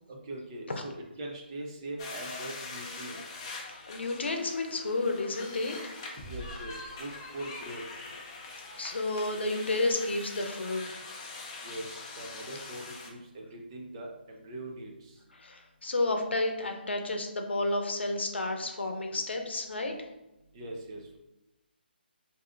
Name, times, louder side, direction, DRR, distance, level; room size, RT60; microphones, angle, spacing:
voice 1, 0.1-3.4 6.2-7.8 11.6-15.2 20.5-21.0, right 1 dB, 25° right, 0 dB, 0.5 m, -42 dB
sound 1, 2.0-13.1, left 3 dB, 25° left, 0.5 m, -43 dB
voice 2, 3.9-5.8 8.7-11.0 15.3-19.9, left 2 dB, 85° left, 4 dB, 0.7 m, -31 dB
sound 2, 6.2-7.9, equal, 10° right, 1.2 m, -46 dB
4.6 x 2.6 x 2.5 m, 0.97 s
hypercardioid pair, 165°, 6 cm